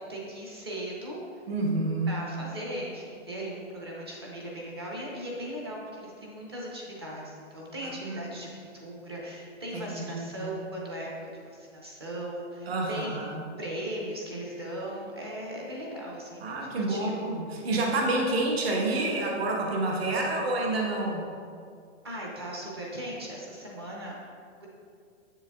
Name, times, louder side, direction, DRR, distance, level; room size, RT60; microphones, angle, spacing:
voice 1, 0.0-1.4 2.1-8.5 8.7-17.1 22.0-24.1 24.6-24.7, right 1 dB, 20° right, -3 dB, 0.5 m, -38 dB
voice 2, 1.5-2.1 7.8-8.3 9.7-10.5 12.7-13.4 16.4-21.2, right 2 dB, 55° right, -1 dB, 1.0 m, -29 dB
7.6 x 6.8 x 2.2 m, 2.3 s
hypercardioid pair, 175°, 38 cm